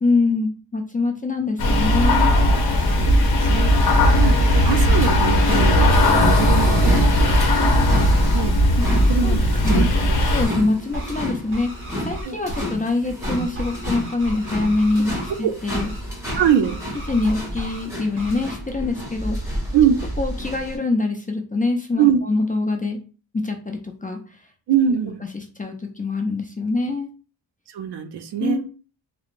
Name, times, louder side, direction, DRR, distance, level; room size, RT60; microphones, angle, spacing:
voice 1, 0.0-2.3 4.1-4.2 8.8-8.9 9.2-9.4 9.6-9.9 10.3-11.7 12.0-16.2 16.5-16.6 17.1-19.5 20.2-23.0 23.4-24.2 25.3-27.1 28.4-28.6, left 3 dB, 20° left, 3 dB, 0.3 m, -24 dB
sound 1, 1.6-10.5, left 1 dB, 50° left, 0.9 m, -17 dB
sound 2, 2.5-20.8, equal, 5° right, 1.3 m, -31 dB
voice 2, 3.0-8.6 9.1-9.9 12.2-12.4 15.4-15.5 16.3-16.8 19.7-19.9 22.0-22.2 24.7-25.2 27.7-28.6, right 8 dB, 60° right, 9 dB, 0.5 m, -23 dB
sound 3, 4.7-5.5 5.9-7.0 7.4-7.7 8.8-9.1 10.3-10.6 10.9-11.2 11.5-12.8 13.2-15.4 15.7-16.0 16.3-17.9 18.2-18.5, right 1 dB, 25° right, 1.1 m, -33 dB
2.9 x 2.0 x 2.4 m, 0.36 s
cardioid pair, 70°, 46 cm